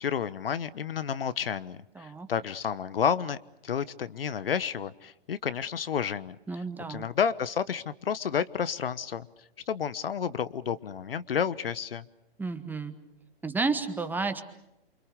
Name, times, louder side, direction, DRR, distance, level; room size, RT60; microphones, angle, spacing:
voice 1, 0.0-3.4 3.6-6.4 6.9-9.3 9.7-12.0, left 7 dB, 65° left, 15 dB, 1.2 m, -30 dB
voice 2, 1.9-2.3 6.5-7.1 12.4-12.9 13.4-14.4, right 4 dB, 5° right, 9 dB, 1.6 m, -31 dB
28.5 x 26.0 x 6.7 m, 0.86 s
figure-of-eight pair, 125°, 31 cm